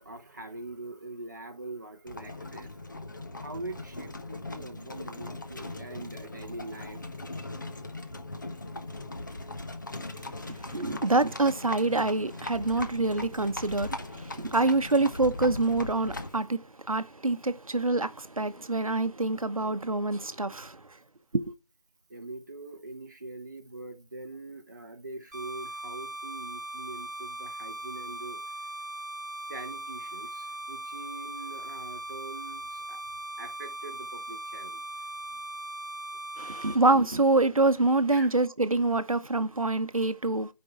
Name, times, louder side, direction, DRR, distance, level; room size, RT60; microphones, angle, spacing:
voice 1, 0.0-2.7 3.4-7.0 22.1-28.4 29.5-33.0 33.4-34.8 38.1-38.3, right 2 dB, 30° right, 0.8 m, -43 dB
Livestock farm animals working animals, 2.1-16.4, left 2 dB, 30° left, 0.9 m, -39 dB
voice 2, 10.5-16.6 16.9-20.8 21.3-21.5 36.4-40.5, right 2 dB, 60° right, 0.9 m, -26 dB
sound 1, 25.3-36.7, right 1 dB, ahead, 3.6 m, -39 dB
12.5 x 5.3 x 4.5 m
figure-of-eight pair, 165°, 20 cm